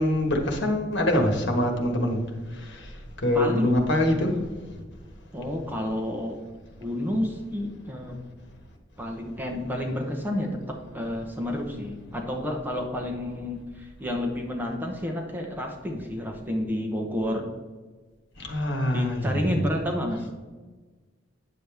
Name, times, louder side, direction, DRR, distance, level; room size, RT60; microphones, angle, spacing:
voice 1, 0.0-2.2 2.5-4.7 18.4-19.5, left 1 dB, 65° left, 3 dB, 1.5 m, -25 dB
voice 2, 3.3-3.8 5.3-6.4 6.8-8.2 9.0-17.5 18.9-20.3, left 1 dB, 10° right, 1 dB, 0.9 m, -30 dB
9.3 x 6.9 x 3.5 m, 1.3 s
head